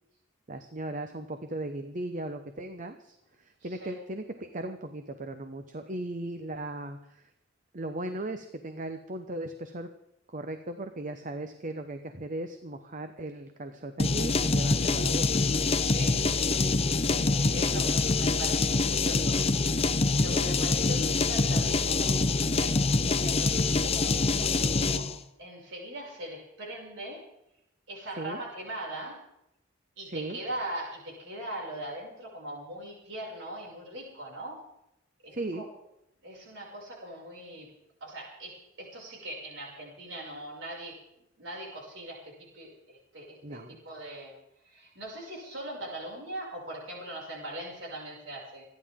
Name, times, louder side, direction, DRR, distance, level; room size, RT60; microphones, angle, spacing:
voice 1, 0.5-7.2 7.7-9.9 10.3-15.4 16.2-16.3 17.1-17.4 20.3-20.5 28.2-28.4 30.1-30.4 35.3-35.6 43.4-43.8, right 1 dB, 40° right, 7 dB, 1.0 m, -37 dB
voice 2, 3.6-4.0 15.7-16.3 16.6-19.3 20.1-25.1 25.4-27.2 27.9-29.2 30.0-34.6 35.2-35.6 36.2-37.7 38.0-41.0 41.4-44.4 44.6-48.6, right 1 dB, 70° right, -2 dB, 6.4 m, -41 dB
sound 1, 14.0-25.2, left 3 dB, 30° left, 0.7 m, -25 dB
27.0 x 11.0 x 3.7 m, 0.83 s
head